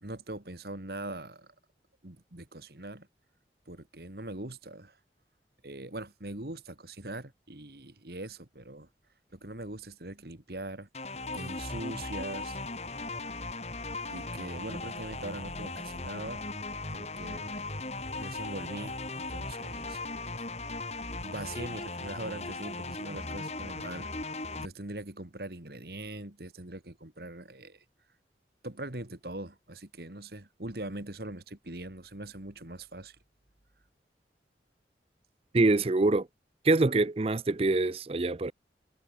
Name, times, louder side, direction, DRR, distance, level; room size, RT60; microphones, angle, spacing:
voice 1, 0.0-1.5 2.0-3.1 3.7-5.0 5.6-8.9 9.3-10.9 11.3-12.6 14.1-16.4 16.9-17.7 18.2-20.0 21.2-24.1 24.6-27.8 28.6-33.2, right 2 dB, 60° right, 2.2 m, -41 dB
sound 1, 10.9-24.7, left 2 dB, 35° left, 4.1 m, -38 dB
voice 2, 35.5-36.3 36.6-38.5, right 2 dB, 35° right, 0.5 m, -25 dB
head